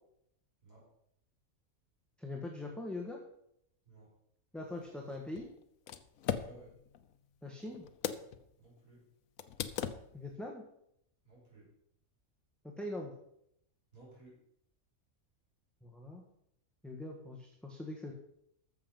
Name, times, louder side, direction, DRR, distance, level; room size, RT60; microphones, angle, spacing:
voice 1, 2.2-3.2 4.5-5.5 7.4-7.8 10.1-10.6 12.6-13.1 15.8-16.2 16.8-18.1, left 2 dB, ahead, 0 dB, 1.3 m, -42 dB
sound 1, 4.7-8.5 8.8-8.9 9.4-10.3, left 9 dB, 75° left, 1.2 m, -40 dB
voice 2, 6.3-6.8 8.6-9.0 11.2-11.7 13.9-14.4, right 2 dB, 85° right, -5 dB, 5.4 m, -57 dB
13.5 x 7.1 x 5.4 m, 0.75 s
omnidirectional pair, 1.4 m